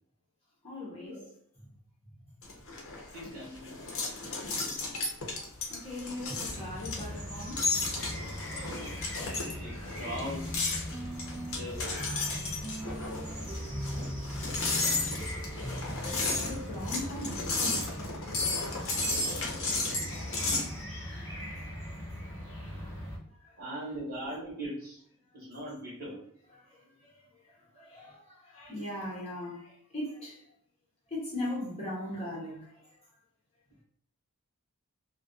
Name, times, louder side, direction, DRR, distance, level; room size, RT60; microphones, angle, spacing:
voice 1, 0.6-1.2 5.7-7.8 12.6-12.7 13.4-13.5 14.0-14.4 16.4-18.0 20.1-21.9 22.2-23.6 26.5-30.5 31.1-33.0, left 1 dB, 30° left, 0.7 m, -41 dB
sound 1, 2.4-20.7, left 3 dB, 65° left, 0.7 m, -33 dB
voice 2, 3.1-3.8 8.5-9.0 9.6-10.6 11.5-12.0 19.1-19.8 23.5-25.0 25.3-26.2, equal, 55° right, 0.9 m, -41 dB
sound 2, 6.4-23.2, equal, 15° left, 1.1 m, -41 dB
sound 3, 10.0-16.9, equal, 5° right, 0.3 m, -41 dB
2.4 x 2.2 x 2.4 m
head